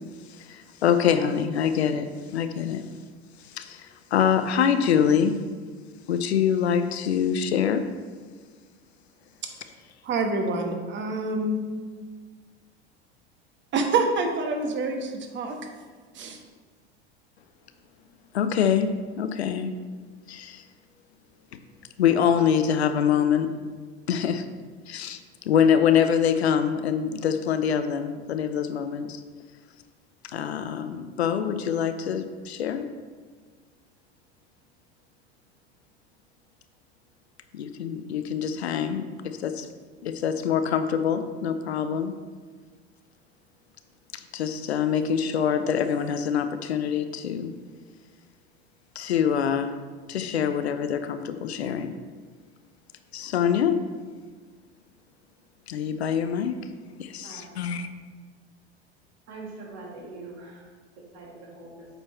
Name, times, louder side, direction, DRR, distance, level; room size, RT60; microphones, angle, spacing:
voice 1, 0.5-2.8 3.6-3.8 4.1-5.4 6.1-7.9 18.3-18.9 19.2-19.7 20.3-20.6 22.0-23.6 24.1-24.5 24.9-25.2 25.5-29.2 30.3-32.9 37.5-39.7 40.0-42.1 44.3-47.5 49.0-49.8 50.1-51.9 53.1-53.8 55.7-56.6 57.0-57.9, left 8 dB, 85° left, 9 dB, 0.6 m, -25 dB
voice 2, 10.0-11.6 13.7-15.6 16.1-16.4, right 3 dB, 35° right, 4 dB, 1.2 m, -26 dB
voice 3, 57.2-57.7 59.3-60.7 61.1-61.9, right 3 dB, 55° right, -2 dB, 2.3 m, -43 dB
7.8 x 4.6 x 4.3 m, 1.5 s
hypercardioid pair, 80°, 32 cm